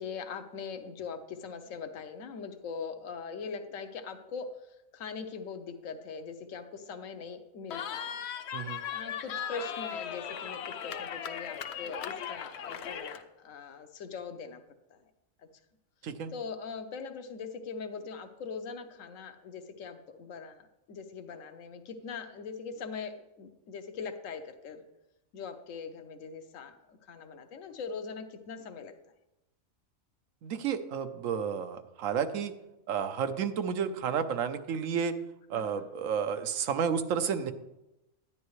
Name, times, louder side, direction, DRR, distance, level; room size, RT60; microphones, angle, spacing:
voice 1, 0.0-4.5 4.9-8.2 8.9-14.6 14.9-15.0 16.3-24.8 25.3-28.9 35.5-35.9, left 5 dB, 80° left, 7 dB, 1.2 m, -41 dB
Cheering, 7.7-13.2, left 8 dB, 65° left, 0.8 m, -38 dB
voice 2, 30.4-32.5 32.9-35.1 35.5-37.5, right 7 dB, 90° right, 10 dB, 1.1 m, -31 dB
10.5 x 10.0 x 3.1 m, 0.94 s
omnidirectional pair, 1.3 m